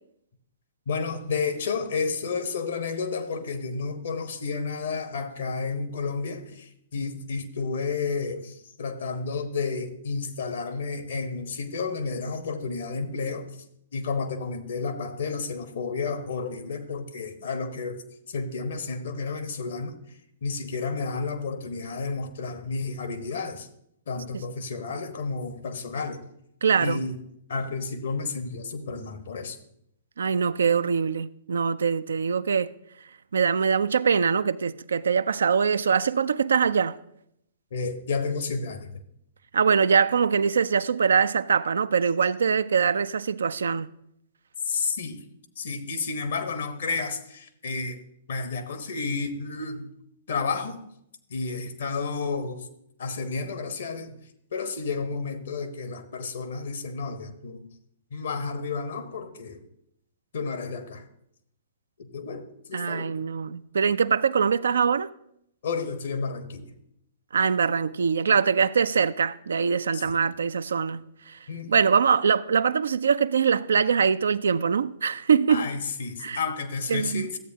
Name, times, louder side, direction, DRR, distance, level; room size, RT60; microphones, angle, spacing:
voice 1, 0.9-13.6 13.9-18.0 18.3-20.0 20.4-23.7 24.1-26.3 26.8-27.2 27.5-29.6 37.7-38.9 44.6-45.2 45.6-48.0 48.3-49.9 50.3-50.8 51.3-52.7 53.0-54.2 54.5-57.7 58.1-59.6 60.3-61.1 62.0-63.1 65.6-66.7 69.9-70.2 71.5-71.8 75.5-77.4, left 4 dB, 60° left, 1.0 m, -31 dB
voice 2, 26.6-27.0 30.2-32.7 33.3-37.0 39.5-43.9 62.7-65.1 67.3-71.4 71.7-75.7 76.2-76.4 76.9-77.3, right 6 dB, 70° right, 0.3 m, -23 dB
13.5 x 8.2 x 2.7 m
figure-of-eight pair, 115°, 0 cm